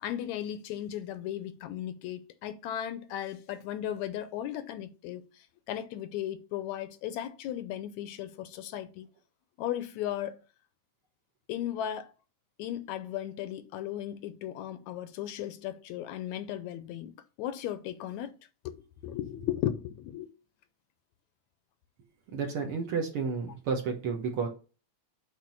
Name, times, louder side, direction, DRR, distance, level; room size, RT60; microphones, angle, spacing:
voice 1, 0.0-5.2 5.7-9.1 9.6-10.4 11.5-12.1 12.6-17.1 17.4-18.3 18.7-18.8 19.0-20.3, left 11 dB, 80° left, 1.8 m, -36 dB
voice 2, 22.3-24.5, right 5 dB, 55° right, 1.8 m, -31 dB
7.5 x 3.7 x 6.1 m
omnidirectional pair, 3.4 m